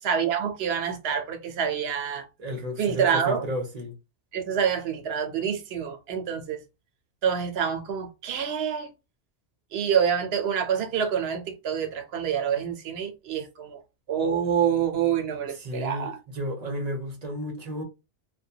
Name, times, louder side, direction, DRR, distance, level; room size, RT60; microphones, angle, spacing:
voice 1, 0.0-2.3 2.8-3.4 4.3-6.6 7.2-8.9 9.7-13.8 14.1-16.2, right 7 dB, 75° right, 0.9 m, -27 dB
voice 2, 2.4-3.9 15.6-17.8, equal, 45° right, 0.7 m, -33 dB
2.2 x 2.2 x 2.7 m
omnidirectional pair, 1.1 m